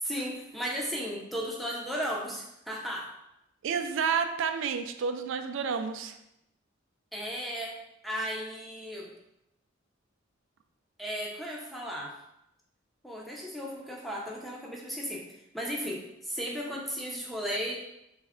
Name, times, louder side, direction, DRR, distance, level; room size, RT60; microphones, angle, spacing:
voice 1, 0.0-3.1 7.1-7.8 8.0-9.1 11.0-12.1 13.0-15.2 15.5-17.8, equal, ahead, -3 dB, 0.5 m, -35 dB
voice 2, 3.6-6.2, right 6 dB, 65° right, 8 dB, 0.3 m, -30 dB
3.4 x 2.1 x 3.5 m, 0.84 s
head